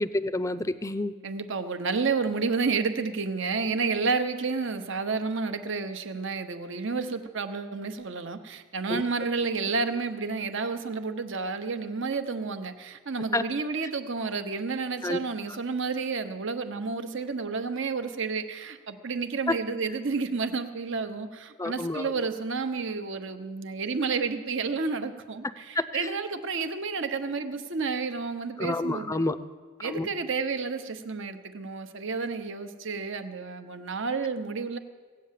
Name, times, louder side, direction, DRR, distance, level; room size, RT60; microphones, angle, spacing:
voice 1, 0.0-1.1 8.9-9.0 13.3-13.4 15.0-15.2 21.6-22.1 25.8-25.9 28.6-29.4 29.8-30.1, left 2 dB, 15° left, 13 dB, 0.5 m, -28 dB
voice 2, 1.2-29.2 29.8-34.8, right 4 dB, 60° right, 8 dB, 1.0 m, -30 dB
17.0 x 8.6 x 7.5 m, 1.5 s
head